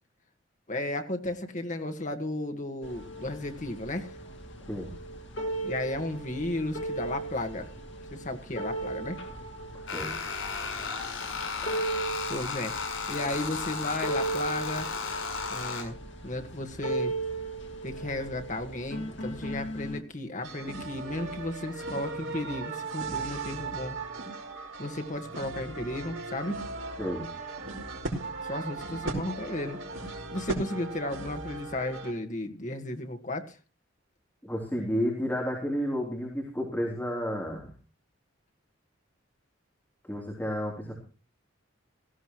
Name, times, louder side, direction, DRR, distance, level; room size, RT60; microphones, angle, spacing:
voice 1, 0.7-4.2 5.6-7.7 8.1-9.2 12.3-12.7 13.1-14.9 15.5-16.0 16.2-17.2 17.8-24.0 24.8-26.6 28.4-29.8 30.3-33.6, left 1 dB, 35° left, 6 dB, 1.7 m, -34 dB
sound 1, 2.8-20.0, right 2 dB, 60° left, 2.5 m, -37 dB
sound 2, 9.9-15.8, left 5 dB, 80° left, 6.2 m, -34 dB
sound 3, 20.4-32.1, right 3 dB, 60° right, 5.1 m, -37 dB
voice 2, 34.4-37.7 40.1-40.9, equal, 10° left, -2 dB, 3.5 m, -31 dB
17.5 x 16.0 x 3.1 m, 0.36 s
head